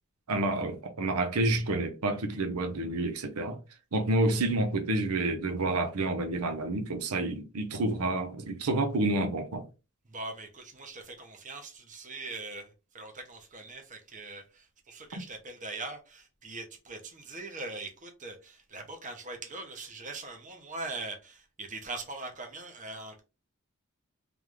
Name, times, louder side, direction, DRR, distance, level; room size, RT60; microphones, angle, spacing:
voice 1, 0.3-3.6 3.9-9.6, right 2 dB, 85° right, 0.7 m, -29 dB
voice 2, 10.1-23.2, right 3 dB, 35° right, 1.0 m, -41 dB
3.4 x 3.2 x 3.5 m
head